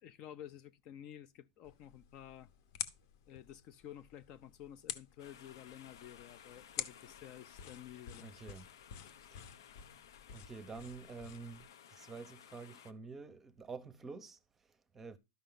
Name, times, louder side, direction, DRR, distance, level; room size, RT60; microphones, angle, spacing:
voice 1, 0.0-2.5 3.3-8.6 9.2-9.3, left 11 dB, 35° left, 0.6 m, -52 dB
sound 1, 1.6-11.6, left 9 dB, 55° left, 1.0 m, -49 dB
sound 2, 5.2-12.9, left 9 dB, 85° left, 0.9 m, -58 dB
voice 2, 8.2-8.7 9.3-9.5 10.3-15.2, right 4 dB, 10° right, 0.8 m, -49 dB
12.5 x 5.5 x 3.9 m
supercardioid pair, 165°, 2 cm